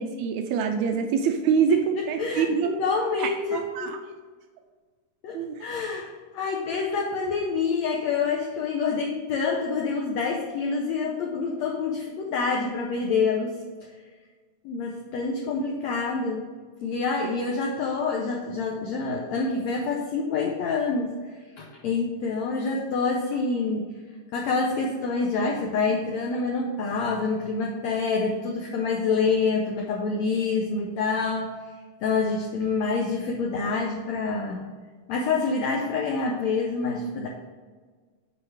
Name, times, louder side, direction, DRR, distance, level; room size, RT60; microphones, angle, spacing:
voice 1, 0.0-2.7 3.2-4.0 5.3-5.6, right 6 dB, 85° right, 5 dB, 1.6 m, -25 dB
voice 2, 1.7-4.0 5.2-6.1 6.3-13.9 14.6-16.5 16.8-21.1 21.6-23.9 24.3-31.5 32.0-34.7 35.1-37.3, left 4 dB, 75° left, -1 dB, 1.7 m, -27 dB
8.4 x 4.9 x 4.8 m, 1.4 s
omnidirectional pair, 3.9 m